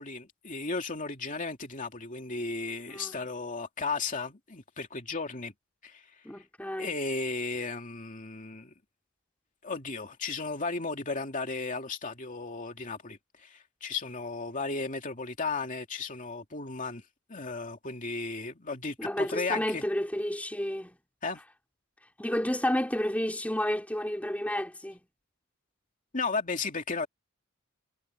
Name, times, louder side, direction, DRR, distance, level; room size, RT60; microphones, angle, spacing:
voice 1, 0.0-5.5 5.8-6.0 6.8-8.7 9.6-17.0 17.3-19.8 21.2-21.4 26.1-27.1, left 4 dB, 35° left, 2.6 m, -35 dB
voice 2, 6.2-6.9 19.0-21.0 22.2-25.0, left 1 dB, 5° left, 2.8 m, -31 dB
head